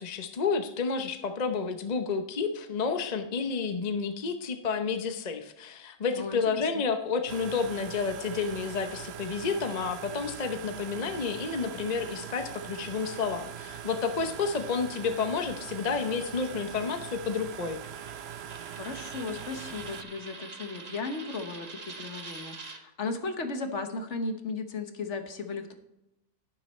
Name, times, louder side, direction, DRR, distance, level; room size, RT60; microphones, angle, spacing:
voice 1, 0.0-17.8, left 5 dB, 35° left, 7 dB, 0.7 m, -30 dB
voice 2, 6.2-6.7 18.8-25.7, left 3 dB, 55° left, 7 dB, 1.3 m, -36 dB
sound 1, 7.3-20.0, right 9 dB, 65° right, 0.7 m, -42 dB
Coin (dropping), 17.3-22.8, right 3 dB, 30° right, 1.0 m, -45 dB
11.0 x 11.0 x 3.2 m, 0.87 s
omnidirectional pair, 1.6 m